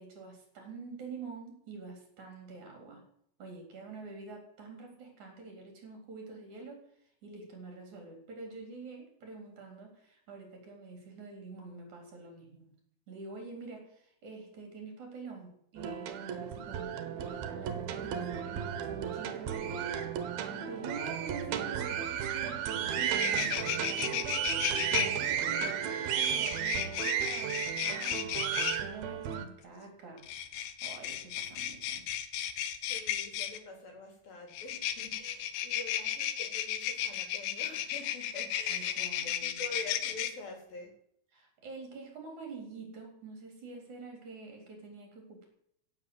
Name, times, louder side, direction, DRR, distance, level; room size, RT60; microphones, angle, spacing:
voice 1, 0.0-3.0 3.4-6.9 7.2-12.7 13.1-20.1 20.5-24.3 24.9-30.3 30.5-32.0 38.7-39.6 41.3-45.5, right 4 dB, 50° right, 2 dB, 5.1 m, -46 dB
sound 1, 15.8-29.4, right 8 dB, 75° right, 3.0 m, -34 dB
sound 2, 22.7-22.8 23.0-25.1 26.1-28.8 30.2-33.6 34.5-40.3, left 11 dB, 90° left, 3.0 m, -34 dB
voice 2, 32.8-40.9, left 2 dB, 70° left, 2 dB, 5.3 m, -46 dB
16.0 x 8.0 x 8.0 m, 0.71 s
omnidirectional pair, 4.4 m